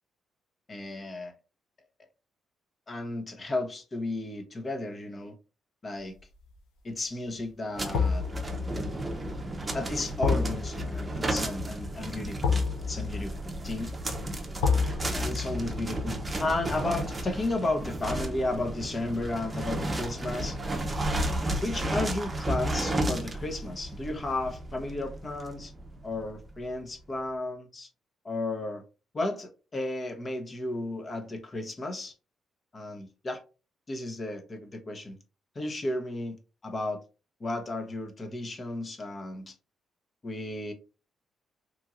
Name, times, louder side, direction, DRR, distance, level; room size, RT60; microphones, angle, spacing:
voice 1, 0.7-1.3 2.9-5.3 5.8-6.2 6.8-8.2 9.7-13.9 15.1-20.6 21.6-25.7 26.0-27.9 28.2-28.8 29.1-32.1 32.7-33.4 33.9-35.2 35.5-37.0 37.4-39.5 40.2-40.7, left 2 dB, 40° left, 0.8 m, -33 dB
sound 1, 6.2-6.5 7.9-18.9 19.3-19.4, left 5 dB, 90° left, 0.5 m, -32 dB
sound 2, 7.8-26.5, right 1 dB, 25° right, 0.6 m, -33 dB
3.0 x 2.5 x 2.4 m
supercardioid pair, 65°, 0 cm